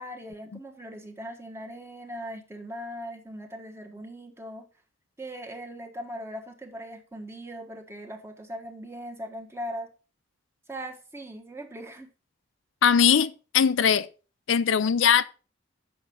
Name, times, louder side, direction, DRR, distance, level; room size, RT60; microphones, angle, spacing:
voice 1, 0.0-4.7 5.2-9.9 10.7-12.1, equal, 15° right, 1.4 m, -39 dB
voice 2, 12.8-14.1 14.5-15.2, left 7 dB, 75° left, 0.5 m, -20 dB
7.8 x 6.0 x 5.2 m
head